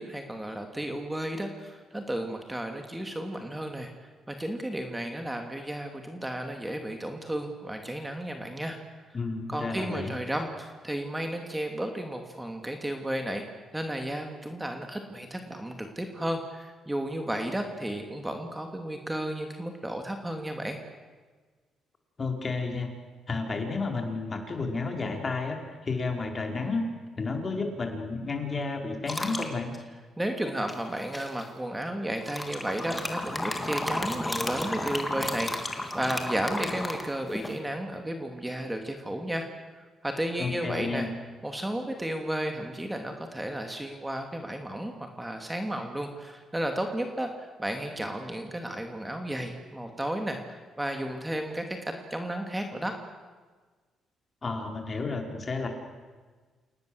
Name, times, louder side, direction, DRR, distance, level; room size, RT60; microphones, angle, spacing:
voice 1, 0.0-3.9 4.3-8.8 9.5-13.4 13.7-20.8 30.2-39.5 40.0-41.1 41.4-52.9, right 1 dB, 10° right, 4 dB, 2.7 m, -33 dB
voice 2, 9.1-10.1 22.2-22.9 23.3-26.8 27.2-29.7 40.4-41.1 54.4-55.7, left 3 dB, 35° left, 3 dB, 5.0 m, -31 dB
sound 1, 29.1-29.5 30.7-31.4 32.2-37.6, left 1 dB, 15° left, 3.2 m, -33 dB
28.5 x 18.5 x 8.0 m, 1.4 s
cardioid pair, 90°, 0 cm